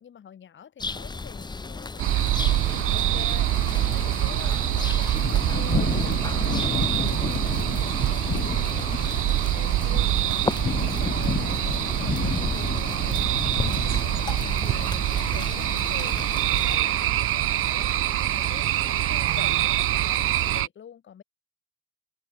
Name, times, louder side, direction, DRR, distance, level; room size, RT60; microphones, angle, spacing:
voice 1, 0.0-3.5 3.9-10.1 10.8-16.2 16.6-21.2, left 8 dB, 65° left, 6.4 m, -46 dB
sound 1, 0.8-16.8, left 3 dB, 20° left, 0.8 m, -35 dB
sound 2, 2.0-20.6, left 6 dB, 40° left, 2.2 m, -34 dB
sound 3, 2.0-20.7, right 15 dB, 85° right, 0.8 m, -25 dB
cardioid pair, 75°, 21 cm